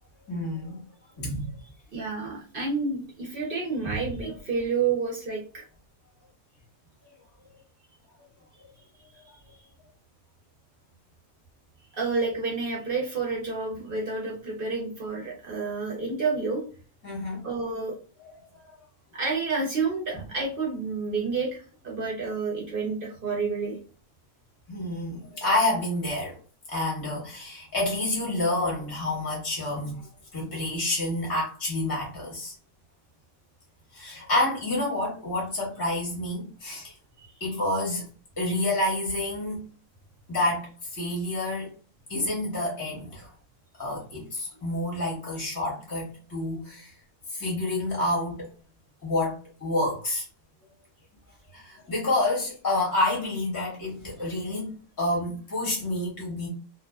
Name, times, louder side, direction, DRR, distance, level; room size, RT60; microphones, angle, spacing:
voice 1, 0.3-0.8 1.2-1.5 3.8-4.0 17.0-17.4 18.2-18.3 18.6-18.7 24.7-26.4 26.7-32.5 33.9-36.9 37.4-38.1 38.4-39.6 40.3-41.7 42.1-43.3 43.8-46.9 47.3-48.5 49.0-50.2 51.5-56.5, left 1 dB, 20° left, -3 dB, 0.7 m, -29 dB
voice 2, 1.9-5.6 11.9-16.6 17.4-17.9 19.1-23.8 37.2-37.3, right 4 dB, 55° right, -1 dB, 0.7 m, -29 dB
2.5 x 2.2 x 2.3 m, 0.39 s
omnidirectional pair, 1.5 m